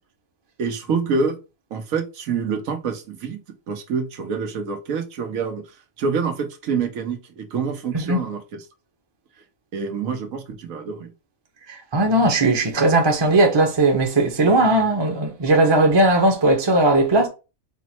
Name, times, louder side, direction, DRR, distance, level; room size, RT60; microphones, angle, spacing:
voice 1, 0.6-1.4 1.7-3.4 3.7-5.6 6.0-8.6 9.7-11.1, right 5 dB, 90° right, 1.3 m, -26 dB
voice 2, 11.7-17.3, right 2 dB, 25° right, 0.6 m, -18 dB
4.6 x 2.0 x 4.2 m
omnidirectional pair, 1.4 m